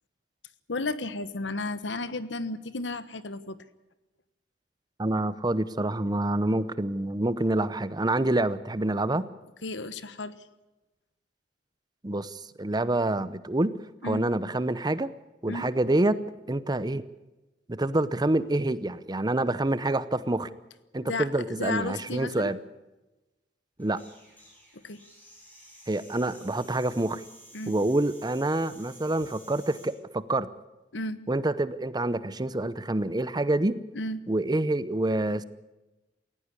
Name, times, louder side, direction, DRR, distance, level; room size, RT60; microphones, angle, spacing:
voice 1, 0.7-3.6 9.6-10.3 14.0-14.2 15.5-15.7 21.0-22.6 24.7-25.0 27.5-27.7 30.9-31.2 33.9-34.2, left 2 dB, 70° left, 14 dB, 1.2 m, -33 dB
voice 2, 5.0-9.3 12.0-13.7 14.0-15.1 15.4-16.2 16.5-17.0 17.7-20.5 20.9-22.6 23.8-24.0 25.9-27.2 27.7-30.5 31.3-33.8 34.3-35.4, right 2 dB, 20° right, 16 dB, 0.8 m, -27 dB
sound 1, 23.8-29.9, equal, 10° left, 7.9 m, -52 dB
18.5 x 17.0 x 8.3 m, 1.0 s
head